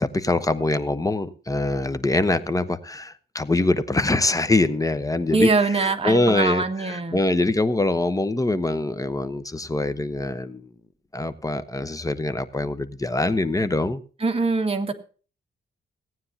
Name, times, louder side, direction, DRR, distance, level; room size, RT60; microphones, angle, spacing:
voice 1, 0.0-10.7 11.1-14.0, left 2 dB, 15° left, 1.0 m, -24 dB
voice 2, 5.3-7.2 14.2-14.9, right 3 dB, 30° right, 2.0 m, -23 dB
17.5 x 9.4 x 2.8 m
cardioid pair, 90°, 20 cm